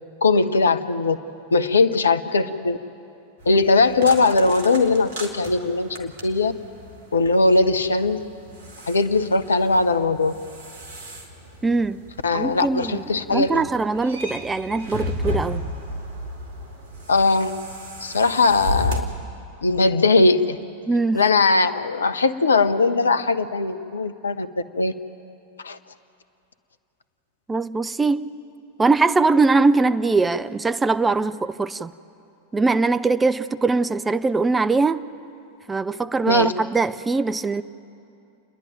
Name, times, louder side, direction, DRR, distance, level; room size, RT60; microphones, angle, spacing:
voice 1, 0.2-1.2 1.5-2.8 3.5-6.5 7.1-8.2 8.9-10.3 12.2-13.6 17.1-17.5 18.0-19.1 19.6-20.6 21.1-24.5 24.8-24.9 25.6-25.8 36.3-36.5, left 3 dB, 70° left, 0.7 m, -19 dB
sound 1, 3.4-19.0, left 1 dB, 55° right, 2.4 m, -34 dB
voice 2, 11.6-12.0 12.3-13.0 13.3-15.6 20.9-21.2 27.5-28.3 28.8-31.9 32.5-35.0 35.7-37.6, right 3 dB, 10° right, 0.5 m, -21 dB
29.5 x 10.5 x 9.1 m
figure-of-eight pair, 90°, 0 cm